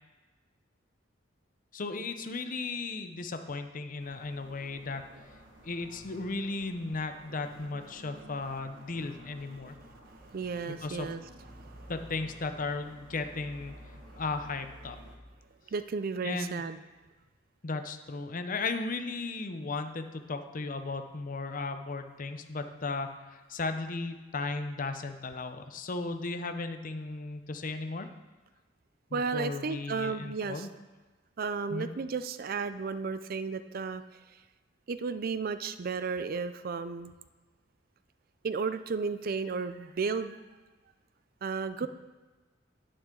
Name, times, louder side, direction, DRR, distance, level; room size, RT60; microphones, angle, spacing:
voice 1, 1.7-5.0 5.6-9.7 10.7-11.1 11.9-13.7 14.2-15.0 16.2-16.6 17.6-28.1 29.1-30.7 31.7-31.9, left 3 dB, 45° left, 8 dB, 0.7 m, -36 dB
sound 1, 4.0-15.2, right 1 dB, 85° right, 1.8 m, -52 dB
voice 2, 10.3-11.2 15.7-16.8 29.1-30.7 31.4-34.0 34.9-37.1 38.4-40.4 41.4-41.9, right 5 dB, 50° right, 12 dB, 0.4 m, -33 dB
10.0 x 9.1 x 3.8 m, 1.3 s
head